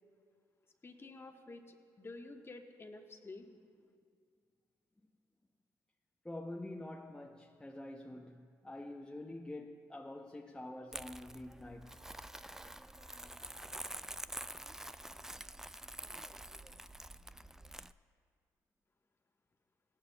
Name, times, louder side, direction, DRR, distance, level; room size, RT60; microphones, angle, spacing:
voice 1, 0.8-3.4, left 3 dB, 30° left, 1.2 m, -50 dB
voice 2, 6.2-12.0, left 1 dB, 10° left, 0.7 m, -46 dB
Crumpling crinkling, 10.9-17.9, right 1 dB, 5° right, 0.3 m, -47 dB
17.0 x 12.5 x 2.3 m
supercardioid pair, 65°, 8 cm